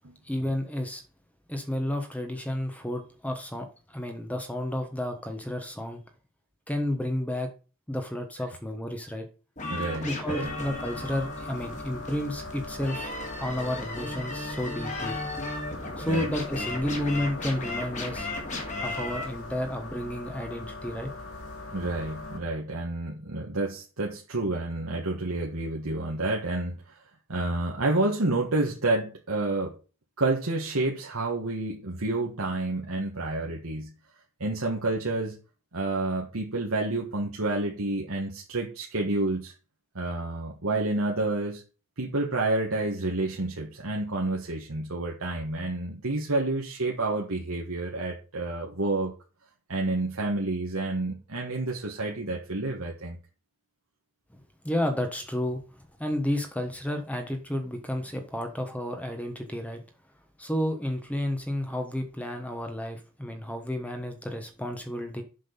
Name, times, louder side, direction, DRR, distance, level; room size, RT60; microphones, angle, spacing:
voice 1, 0.2-1.0 1.5-6.0 6.7-7.5 7.9-9.2 10.0-13.1 13.4-15.2 16.0-18.3 18.8-21.1 54.6-55.6 56.0-59.8 60.4-65.2, left 1 dB, 5° left, 6 dB, 1.2 m, -31 dB
sound 1, 9.6-19.2, left 2 dB, 35° left, 2.5 m, -36 dB
voice 2, 9.7-10.5 16.1-16.3 21.7-27.0 27.3-29.7 30.2-33.9 34.4-35.4 35.7-39.5 40.0-41.6 42.0-49.1 49.7-53.2, right 2 dB, 80° right, -1 dB, 1.6 m, -29 dB
sound 2, 10.4-22.4, left 2 dB, 85° left, 2.4 m, -40 dB
7.5 x 6.3 x 5.4 m, 0.34 s
head